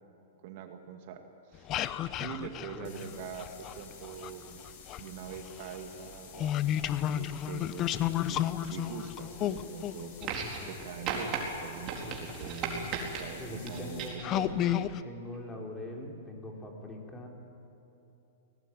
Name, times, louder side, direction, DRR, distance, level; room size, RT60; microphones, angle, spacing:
voice 1, 0.4-1.2 1.5-1.7 2.2-3.5 3.8-4.6 5.0-6.5 7.1-10.2 10.7-12.9 13.2-14.7, right 7 dB, 55° right, 5 dB, 2.1 m, -43 dB
sound 1, 1.5-4.3 4.7-11.4 12.3-12.4 13.0-13.3 13.8-13.9 14.2-15.0, left 11 dB, 30° left, 0.8 m, -32 dB
sound 2, 2.8-14.1, left 6 dB, 55° left, 5.4 m, -53 dB
sound 3, 10.2-10.8 11.1-11.4 11.9-13.2 13.7-14.3 15.3-15.4, right 6 dB, 35° right, 4.2 m, -35 dB
voice 2, 13.4-14.8 15.0-17.3, left 1 dB, 10° left, 0 dB, 3.9 m, -42 dB
23.5 x 18.0 x 9.5 m, 2.9 s
hypercardioid pair, 135°, 0 cm